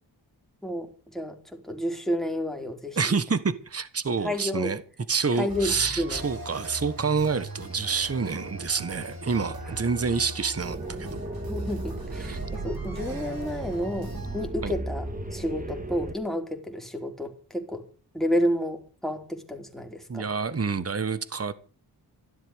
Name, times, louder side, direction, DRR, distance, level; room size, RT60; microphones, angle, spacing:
voice 1, 0.6-3.2 4.2-4.7 5.3-6.3 9.7-9.9 11.4-17.9 18.1-20.3, equal, ahead, 3.7 m, -31 dB
voice 2, 3.0-4.8 5.1-11.2 12.2-12.4 14.6-14.7 20.1-21.6, right 5 dB, 35° right, 1.4 m, -28 dB
sound 1, 5.5-14.5, right 1 dB, 60° right, 5.3 m, -40 dB
sound 2, 10.6-16.1, right 2 dB, 20° right, 2.4 m, -35 dB
14.5 x 11.5 x 6.4 m
wide cardioid pair, 95°, 41 cm